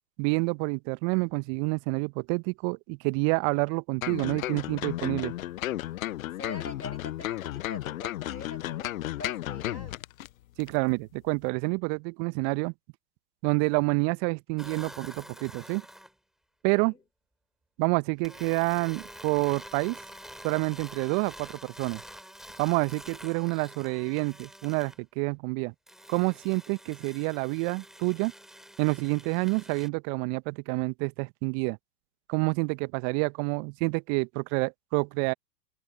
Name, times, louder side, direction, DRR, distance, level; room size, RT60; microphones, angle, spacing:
voice 1, 0.2-5.3 10.6-12.7 13.4-15.8 16.6-16.9 17.8-20.0 20.4-22.0 22.6-25.7 26.1-28.3 28.8-31.8 32.3-35.3, right 36 dB, 35° right, 1.2 m, -28 dB
sound 1, 4.0-10.3 10.6-10.7, left 14 dB, 55° left, 0.8 m, -34 dB
voice 2, 6.3-10.0 16.6-17.0, left 2 dB, 90° left, 4.3 m, -44 dB
sound 2, 14.6-16.1 18.2-25.0 25.9-29.9, equal, ahead, 7.5 m, -47 dB
figure-of-eight pair, 105°, 50 cm